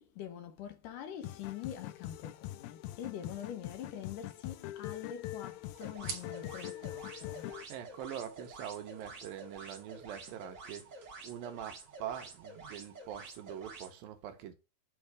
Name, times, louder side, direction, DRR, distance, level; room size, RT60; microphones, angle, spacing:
voice 1, 0.0-7.5, left 9 dB, 70° left, 2.4 m, -45 dB
sound 1, 1.2-7.6, left 15 dB, 90° left, 2.5 m, -43 dB
sound 2, 4.6-12.2, right 6 dB, 55° right, 2.5 m, -53 dB
sound 3, 5.7-13.9, right 3 dB, 40° right, 1.9 m, -49 dB
voice 2, 7.7-14.5, right 10 dB, 80° right, 2.7 m, -44 dB
7.6 x 3.4 x 6.1 m
omnidirectional pair, 4.2 m